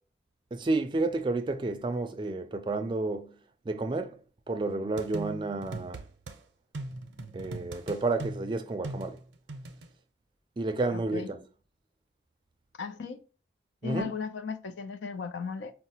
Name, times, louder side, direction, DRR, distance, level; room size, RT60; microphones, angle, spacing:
voice 1, 0.5-3.4 3.7-4.2 4.5-6.0 7.3-9.2 10.6-11.4 13.8-14.2, right 3 dB, 25° right, 0.3 m, -31 dB
sound 1, 5.0-6.4 6.7-9.9, right 2 dB, 90° right, 0.5 m, -40 dB
voice 2, 10.9-11.3 12.8-13.2 13.8-15.7, left 5 dB, 90° left, 0.4 m, -36 dB
4.7 x 2.0 x 2.8 m
head